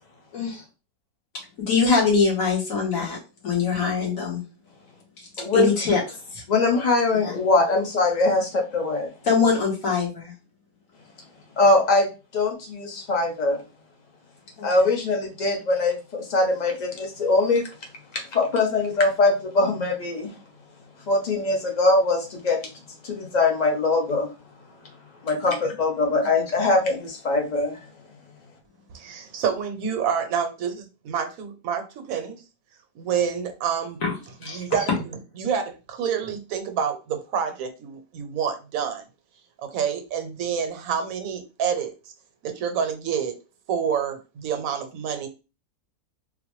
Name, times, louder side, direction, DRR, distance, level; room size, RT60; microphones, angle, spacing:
voice 1, 0.3-0.6 1.7-3.2 3.4-4.4 5.5-6.4 7.2-7.4 9.2-10.3 14.6-14.9 25.5-25.6 34.0-34.2 34.4-34.8, left 5 dB, 70° left, -2 dB, 1.7 m, -23 dB
voice 2, 5.4-5.7 6.5-9.1 11.6-12.1 12.3-13.6 14.6-17.7 18.3-20.3 21.1-22.6 23.0-24.3 25.2-27.8, left 3 dB, 35° left, 2 dB, 0.8 m, -22 dB
voice 3, 28.9-32.4 32.9-34.0 34.5-34.9 35.4-39.0 39.6-41.9 42.4-43.3 43.7-45.3, right 7 dB, 70° right, 7 dB, 1.1 m, -28 dB
3.9 x 2.1 x 3.0 m, 0.30 s
omnidirectional pair, 1.5 m